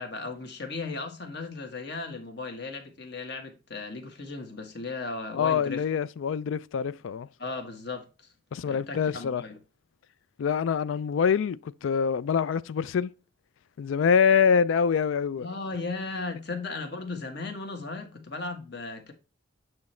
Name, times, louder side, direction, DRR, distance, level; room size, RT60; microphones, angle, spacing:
voice 1, 0.0-5.8 7.4-8.3 8.6-9.6 15.4-19.1, left 3 dB, 55° left, 1.4 m, -36 dB
voice 2, 5.3-7.3 8.5-9.4 10.4-13.1 13.8-15.5, left 6 dB, 80° left, 0.3 m, -25 dB
8.4 x 3.1 x 4.3 m
head